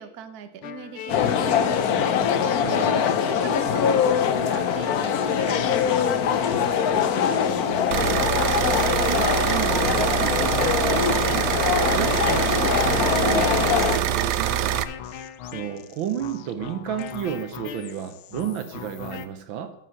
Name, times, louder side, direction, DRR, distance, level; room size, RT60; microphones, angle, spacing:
voice 1, 0.0-2.6 3.1-7.1, right 7 dB, 55° right, 9 dB, 1.3 m, -41 dB
sound 1, 0.6-19.3, left 10 dB, 80° left, 1.5 m, -38 dB
sound 2, 1.1-14.0, left 7 dB, 65° left, 1.0 m, -23 dB
voice 2, 2.6-3.1 7.6-8.3 8.9-19.7, right 9 dB, 70° right, 8 dB, 1.4 m, -33 dB
sound 3, 7.9-14.8, right 12 dB, 85° right, 0.8 m, -24 dB
13.5 x 5.9 x 6.3 m, 0.88 s
omnidirectional pair, 2.3 m